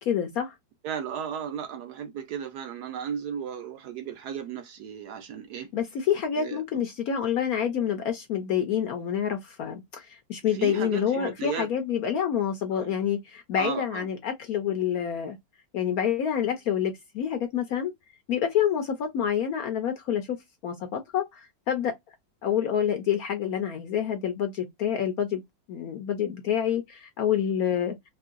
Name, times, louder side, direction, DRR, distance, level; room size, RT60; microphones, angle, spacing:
voice 1, 0.0-0.5 5.7-15.4 15.7-17.9 18.3-20.4 20.6-21.9 22.4-25.4 25.7-27.9, left 9 dB, 70° left, 0.9 m, -27 dB
voice 2, 0.8-5.7 6.3-6.6 10.5-11.7 12.7-12.9 13.6-14.1, right 8 dB, 70° right, 1.0 m, -35 dB
3.0 x 2.6 x 2.4 m
omnidirectional pair, 2.0 m